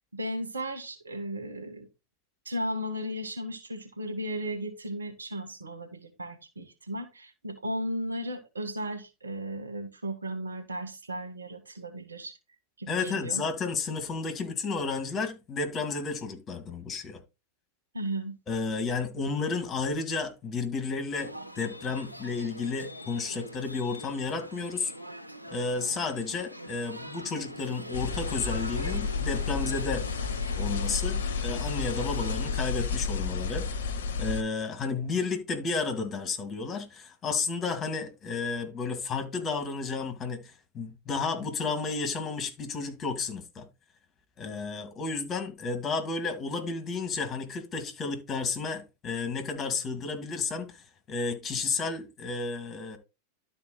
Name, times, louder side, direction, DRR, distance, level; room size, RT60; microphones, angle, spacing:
voice 1, 0.1-1.9 2.4-12.4 12.8-13.4 17.9-18.3, equal, 75° right, 1.5 m, -35 dB
voice 2, 12.9-17.2 18.5-24.9 25.5-30.1 30.6-33.7 34.2-43.7 44.4-53.0, left 4 dB, 25° left, 2.2 m, -32 dB
sound 1, 21.2-32.7, equal, 90° left, 0.7 m, -42 dB
sound 2, 27.9-34.4, left 5 dB, 60° left, 1.0 m, -31 dB
12.0 x 4.4 x 4.1 m
figure-of-eight pair, 90°, 0 cm